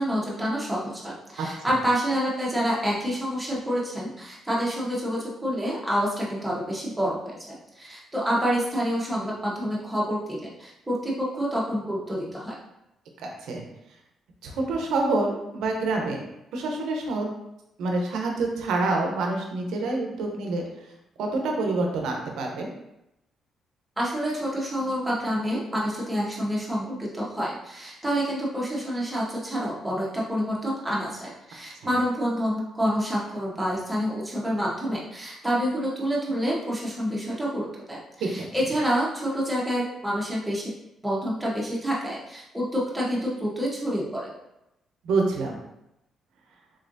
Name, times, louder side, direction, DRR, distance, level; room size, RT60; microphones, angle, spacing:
voice 1, 0.0-12.5 24.0-40.7 41.0-44.3, equal, 10° right, -5 dB, 1.2 m, -28 dB
voice 2, 13.2-13.6 14.4-17.3 17.8-20.6 21.2-22.7 38.2-38.5 45.0-45.6, right 3 dB, 85° right, 1 dB, 0.7 m, -27 dB
3.8 x 3.2 x 2.6 m, 0.86 s
cardioid pair, 90°, 0 cm